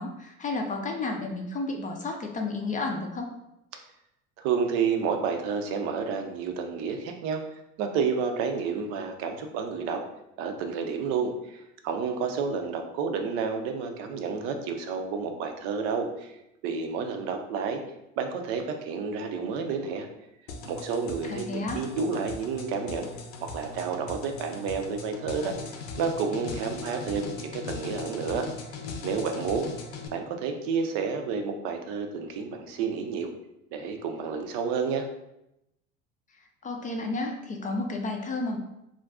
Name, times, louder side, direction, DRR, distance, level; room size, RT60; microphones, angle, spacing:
voice 1, 0.0-3.3 21.2-21.9 36.6-38.6, left 3 dB, 25° left, 2 dB, 0.4 m, -32 dB
voice 2, 4.4-7.4 7.8-10.0 10.4-16.3 16.6-17.8 18.2-20.1 20.6-23.1 23.5-25.5 26.0-28.4 29.0-29.7 30.1-33.3 33.7-35.1, right 5 dB, 70° right, 5 dB, 0.6 m, -30 dB
sound 1, 20.5-30.1, left 4 dB, 65° left, 0.6 m, -39 dB
2.4 x 2.2 x 3.5 m, 0.85 s
hypercardioid pair, 85°, 34 cm